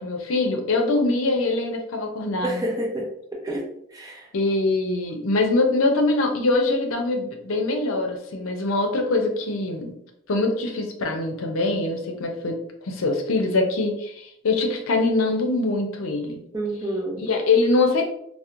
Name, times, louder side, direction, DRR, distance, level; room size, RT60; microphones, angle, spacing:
voice 1, 0.0-2.6 4.3-9.9 10.3-12.6 12.8-16.4 17.2-18.1, left 2 dB, 85° left, 3 dB, 0.6 m, -23 dB
voice 2, 2.4-4.3 16.5-17.2, right 1 dB, 15° right, -1 dB, 0.6 m, -29 dB
4.3 x 2.0 x 2.4 m, 0.74 s
head